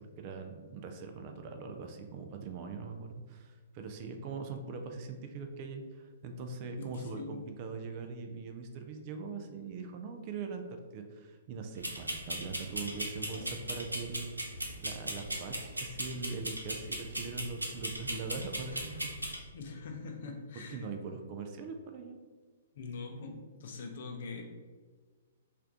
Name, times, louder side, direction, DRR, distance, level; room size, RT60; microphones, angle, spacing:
voice 1, 0.0-14.3 14.8-19.1 20.7-22.2, right 4 dB, 35° right, 5 dB, 0.4 m, -42 dB
voice 2, 6.8-7.4 19.5-20.9 22.7-24.4, left 4 dB, 55° left, 3 dB, 0.6 m, -43 dB
sound 1, 11.8-19.4, right 1 dB, 90° right, 0.5 m, -38 dB
3.2 x 2.5 x 3.6 m, 1.4 s
figure-of-eight pair, 115°, 0 cm